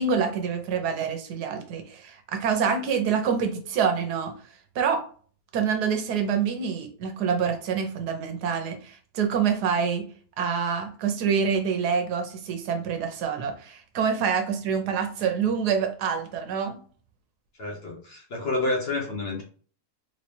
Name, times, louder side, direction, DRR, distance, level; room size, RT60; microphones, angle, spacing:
voice 1, 0.0-4.3 4.7-5.0 5.5-10.1 10.4-16.8, right 6 dB, 90° right, 5 dB, 1.3 m, -26 dB
voice 2, 17.6-19.4, left 2 dB, 50° left, 0 dB, 0.9 m, -29 dB
3.3 x 3.2 x 2.7 m, 0.43 s
omnidirectional pair, 1.7 m